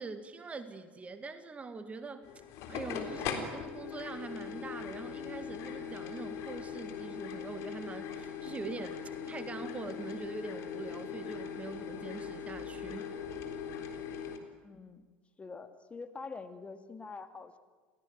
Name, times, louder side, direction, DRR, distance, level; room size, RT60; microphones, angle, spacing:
voice 1, 0.0-2.3 2.7-9.0 9.3-13.1, right 4 dB, 20° right, 10 dB, 2.0 m, -43 dB
sound 1, 2.2-14.4, left 7 dB, 50° left, 3.8 m, -40 dB
voice 2, 14.6-15.0 15.4-17.6, left 4 dB, 20° left, 8 dB, 2.2 m, -45 dB
29.0 x 18.0 x 9.3 m, 1.4 s
figure-of-eight pair, 70°, 6 cm